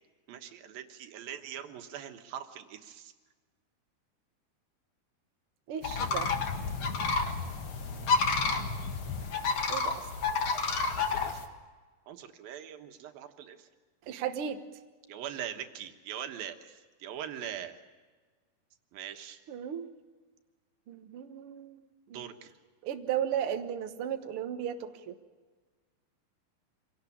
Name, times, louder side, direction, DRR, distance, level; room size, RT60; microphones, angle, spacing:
voice 1, 0.3-3.1 11.0-11.4 12.1-13.7 15.1-17.8 18.9-19.4 22.1-22.5, right 10 dB, 70° right, 6 dB, 3.0 m, -42 dB
voice 2, 5.7-6.3 9.7-10.1 14.1-14.6 19.5-19.9 20.9-22.3 22.8-25.2, right 9 dB, 85° right, 7 dB, 1.2 m, -35 dB
sound 1, 5.8-11.4, left 4 dB, 45° left, 1.8 m, -30 dB
25.5 x 18.0 x 8.6 m, 1.4 s
omnidirectional pair, 4.5 m